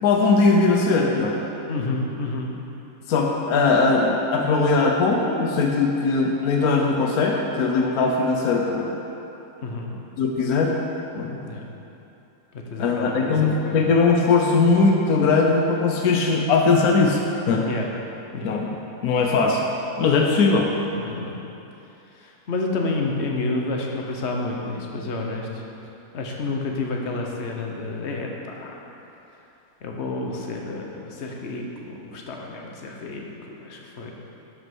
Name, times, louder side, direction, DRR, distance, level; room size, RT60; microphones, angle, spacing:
voice 1, 0.0-1.4 3.1-9.0 10.2-10.7 11.1-11.4 12.8-17.2 17.5-17.6 18.4-18.8 19.0-19.7 20.0-20.7, left 4 dB, 80° left, 1 dB, 1.3 m, -20 dB
voice 2, 1.7-2.5 9.6-9.9 11.4-11.7 12.5-13.8 17.6-17.9 18.3-18.6 20.9-21.4 22.1-25.6 26.1-28.7 29.8-34.1, left 2 dB, 50° left, 0 dB, 1.3 m, -30 dB
11.5 x 5.3 x 6.2 m, 2.9 s
omnidirectional pair, 1.6 m